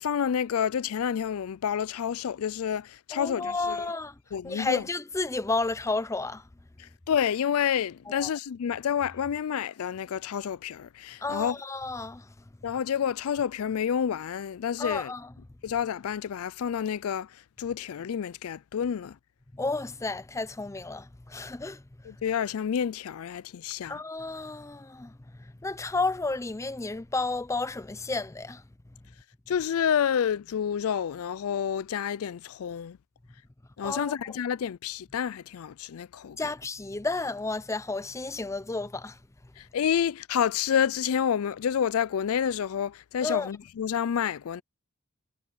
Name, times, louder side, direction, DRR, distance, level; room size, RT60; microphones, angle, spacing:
voice 1, 0.0-3.9 4.3-4.8 6.8-11.6 12.6-15.1 15.6-19.2 22.0-24.0 29.5-33.0 33.8-36.4 39.6-44.6, left 8 dB, 65° left, 0.4 m, -29 dB
voice 2, 3.1-4.2 4.4-6.5 8.1-8.3 11.2-12.3 14.8-15.3 19.5-21.8 23.9-28.6 33.8-34.2 36.4-39.2 43.2-43.5, left 3 dB, 15° left, 0.5 m, -32 dB
head